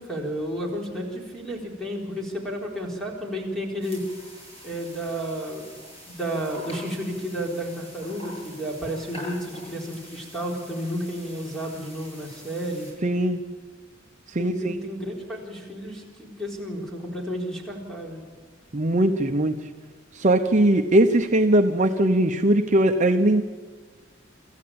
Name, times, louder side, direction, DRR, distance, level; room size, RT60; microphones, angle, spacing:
voice 1, 0.0-4.0 4.6-5.7 6.1-12.9 14.4-18.2, equal, ahead, -2 dB, 4.2 m, -32 dB
sound 1, 3.8-12.9, equal, 30° left, 7.9 m, -45 dB
voice 2, 13.0-13.4 14.3-14.8 18.7-19.5 20.1-23.4, right 1 dB, 40° right, 5 dB, 0.8 m, -20 dB
25.5 x 14.0 x 8.8 m, 1.5 s
head